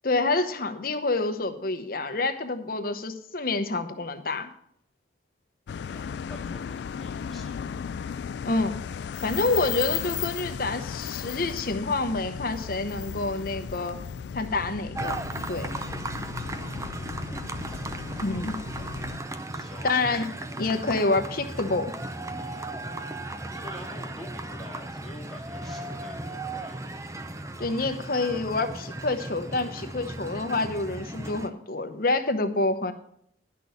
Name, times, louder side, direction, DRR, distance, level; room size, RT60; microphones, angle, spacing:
voice 1, 0.0-4.5 8.4-8.8 9.2-14.0 14.3-15.2 15.5-15.7 18.2-18.6 19.8-20.3 20.6-21.9 27.6-32.9, left 3 dB, 50° left, 7 dB, 0.9 m, -27 dB
sound 1, 5.7-19.2, left 7 dB, 65° left, 0.3 m, -35 dB
voice 2, 5.9-7.7 17.1-17.4 19.5-19.9 23.5-26.8, left 1 dB, ahead, -3 dB, 2.2 m, -47 dB
sound 2, 15.0-31.5, right 2 dB, 15° right, 0.5 m, -36 dB
10.5 x 6.1 x 7.0 m, 0.69 s
head